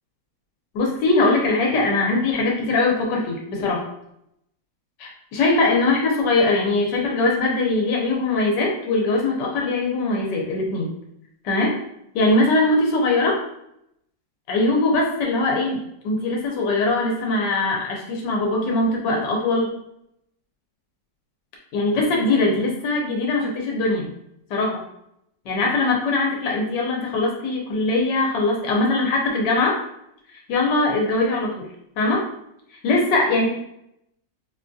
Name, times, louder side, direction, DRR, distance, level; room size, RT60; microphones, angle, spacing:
voice 1, 0.7-3.8 5.0-10.9 11.4-11.8 12.1-13.4 14.5-19.7 21.7-24.1 24.5-24.8 25.4-29.8 30.5-31.6 32.0-32.3 32.8-33.5, left 2 dB, 90° left, -1 dB, 1.4 m, -21 dB
4.8 x 2.3 x 2.6 m, 0.77 s
omnidirectional pair, 1.8 m